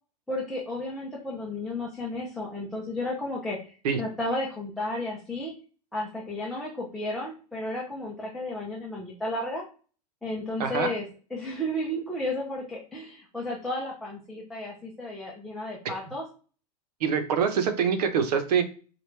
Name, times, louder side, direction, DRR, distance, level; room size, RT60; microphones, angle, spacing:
voice 1, 0.3-5.5 5.9-9.7 10.2-11.0 11.3-16.2, left 1 dB, ahead, -4 dB, 0.6 m, -33 dB
voice 2, 17.0-18.6, right 7 dB, 75° right, 7 dB, 1.0 m, -25 dB
4.9 x 2.5 x 3.2 m, 0.39 s
supercardioid pair, 155°, 21 cm